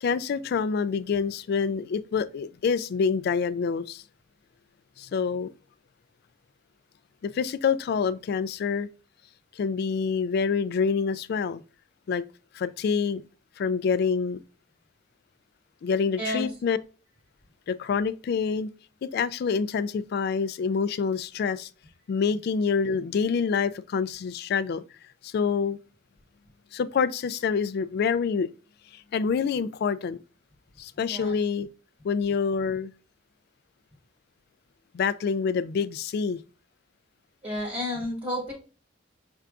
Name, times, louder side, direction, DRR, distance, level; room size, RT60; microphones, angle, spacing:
voice 1, 0.0-4.0 5.0-5.5 7.2-8.9 9.6-11.6 12.1-12.2 12.5-13.2 13.6-14.4 15.8-16.8 17.7-18.7 19.0-21.7 22.1-24.8 25.2-25.8 26.7-28.5 28.9-30.2 30.8-31.7 32.0-32.9 34.9-36.4, left 5 dB, 55° left, 0.3 m, -26 dB
voice 2, 37.4-38.5, left 1 dB, 30° right, 1.4 m, -31 dB
5.6 x 3.5 x 2.4 m
head